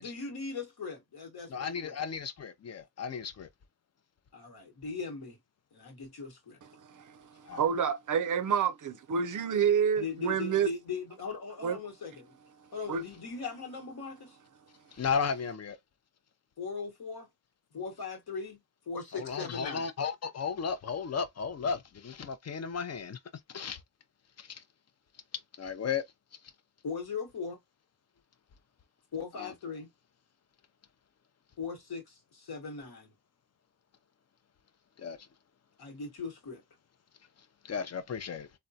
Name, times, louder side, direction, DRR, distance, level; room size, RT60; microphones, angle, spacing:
voice 1, 0.0-1.9 4.3-5.4 5.7-6.6 10.0-12.3 12.7-14.4 16.6-17.3 17.7-18.6 18.9-19.9 26.8-27.6 29.1-29.9 31.6-33.1 35.8-36.6, left 4 dB, 65° left, 1.2 m, -39 dB
voice 2, 1.5-3.5 7.5-7.6 14.9-15.8 19.1-23.2 23.5-23.8 24.4-24.6 25.6-26.0 29.4-29.5 35.0-35.2 37.6-38.5, left 6 dB, 40° left, 0.6 m, -34 dB
voice 3, 6.8-10.7 11.6-11.8 12.9-13.0, right 7 dB, 50° right, 0.5 m, -29 dB
3.5 x 2.2 x 2.7 m
cardioid pair, 70°, 40 cm